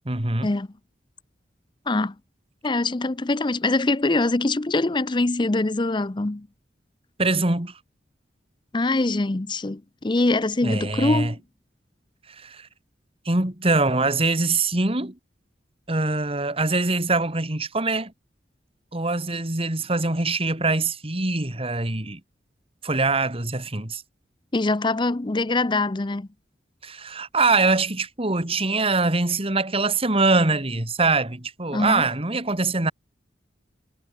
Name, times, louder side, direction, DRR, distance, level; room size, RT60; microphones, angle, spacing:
voice 1, 0.1-0.5 7.2-7.7 10.6-11.3 12.4-12.7 13.3-15.2 15.9-18.1 18.9-22.2 22.8-24.0 26.8-32.9, right 3 dB, 35° right, 2.3 m, -23 dB
voice 2, 1.9-2.2 2.6-6.5 8.7-11.4 24.5-26.3 31.7-32.1, left 2 dB, 25° left, 0.6 m, -23 dB
head